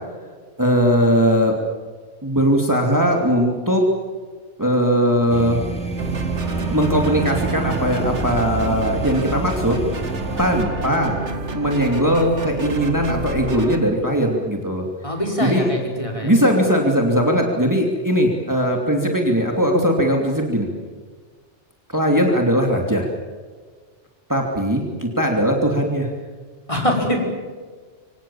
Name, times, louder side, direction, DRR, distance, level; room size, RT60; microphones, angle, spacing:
voice 1, 0.6-1.5 2.2-3.8 4.6-5.6 6.7-9.8 10.4-11.2 11.5-14.8 15.4-15.7 16.2-20.7 21.9-23.1 24.3-26.1, equal, 15° right, 1 dB, 2.8 m, -19 dB
sound 1, 5.3-10.6, right 3 dB, 5° left, 3.1 m, -29 dB
sound 2, 6.0-13.8, right 2 dB, 90° right, 2.5 m, -28 dB
voice 2, 15.0-16.4 26.7-27.2, left 1 dB, 25° left, 1 dB, 5.2 m, -23 dB
26.5 x 25.5 x 7.2 m, 1.5 s
omnidirectional pair, 1.2 m